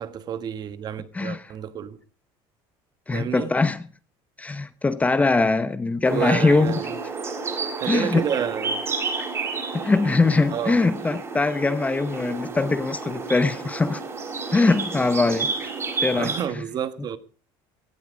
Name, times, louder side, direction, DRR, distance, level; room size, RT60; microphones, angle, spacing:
voice 1, 0.0-2.0 3.1-3.5 6.1-6.9 7.8-8.9 10.5-10.8 16.1-17.2, right 9 dB, 40° right, 1.3 m, -29 dB
voice 2, 1.1-1.5 3.1-3.9 4.4-6.8 7.9-8.3 9.2-9.3 9.7-14.0 14.5-15.7 16.0-16.6, left 3 dB, 15° left, 0.9 m, -22 dB
sound 1, 6.0-16.4, right 4 dB, 25° right, 4.1 m, -31 dB
17.5 x 12.0 x 5.1 m
cardioid pair, 140°, 11 cm